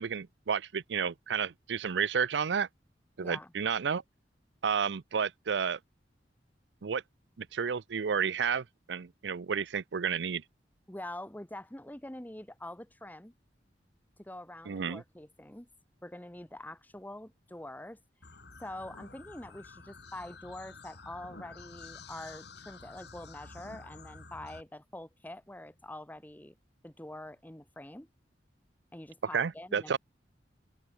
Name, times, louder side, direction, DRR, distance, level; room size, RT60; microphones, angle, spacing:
voice 1, 0.0-2.7 3.2-4.0 4.6-5.8 6.8-7.0 7.4-10.4 14.7-15.0 29.3-30.0, right 6 dB, 75° right, 0.5 m, -31 dB
voice 2, 3.2-3.5 10.9-13.3 14.2-15.7 16.0-18.0 18.6-26.5 26.8-28.1 28.9-30.0, left 1 dB, 10° left, 1.3 m, -45 dB
sound 1, 18.2-24.6, left 4 dB, 70° left, 3.2 m, -50 dB
open air
head